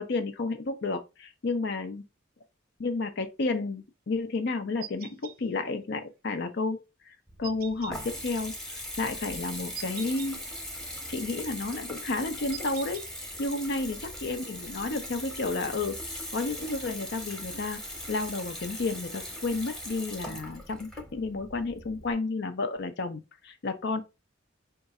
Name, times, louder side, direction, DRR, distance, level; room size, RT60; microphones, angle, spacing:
voice 1, 0.0-2.0 2.8-6.8 7.1-8.5 9.0-10.4 11.1-16.0 16.3-17.8 18.1-24.0, left 3 dB, 60° left, 0.5 m, -31 dB
sound 1, 4.8-5.3 7.4-7.9 9.7-10.3 12.5-13.1, right 10 dB, 50° right, 0.3 m, -42 dB
Water tap faucet / Bathtub (filling or washing) / Trickle dribble, 7.3-22.1, left 1 dB, 5° left, 0.9 m, -40 dB
3.7 x 2.4 x 4.1 m
head